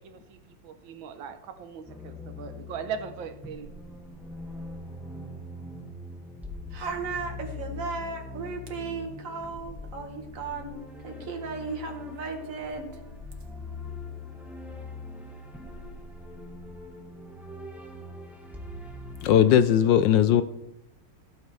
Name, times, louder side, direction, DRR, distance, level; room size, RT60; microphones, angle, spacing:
voice 1, 0.0-3.7, right 7 dB, 65° right, 8 dB, 1.7 m, -39 dB
sound 1, 1.9-19.6, left 3 dB, ahead, 1.1 m, -42 dB
voice 2, 6.7-10.8 11.0-12.9, right 4 dB, 40° right, 3 dB, 2.0 m, -35 dB
voice 3, 19.2-20.4, left 10 dB, 75° left, 12 dB, 1.1 m, -19 dB
16.5 x 8.9 x 3.3 m, 0.84 s
omnidirectional pair, 2.3 m